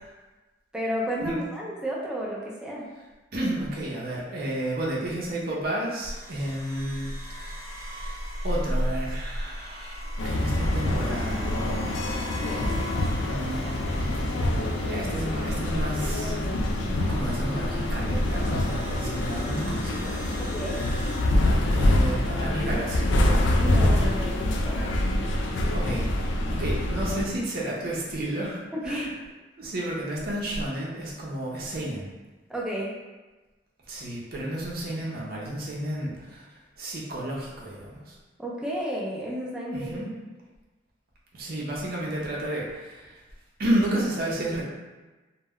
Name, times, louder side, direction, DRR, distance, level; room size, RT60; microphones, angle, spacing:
voice 1, 0.7-2.9 12.4-12.7 20.4-20.8 23.6-24.9 28.7-29.2 32.5-32.9 38.4-40.0, equal, 5° right, -4 dB, 0.4 m, -32 dB
voice 2, 3.3-11.8 13.2-16.4 17.1-20.2 21.3-23.1 25.7-26.2 26.5-29.1 29.6-32.1 33.9-38.2 39.7-40.1 41.3-43.2 43.6-44.6, right 1 dB, 55° right, -4 dB, 0.6 m, -32 dB
sound 1, 6.1-21.2, equal, 55° left, 0.8 m, -36 dB
sound 2, 10.2-27.2, left 1 dB, 75° left, 0.4 m, -25 dB
2.1 x 2.1 x 3.5 m, 1.2 s
head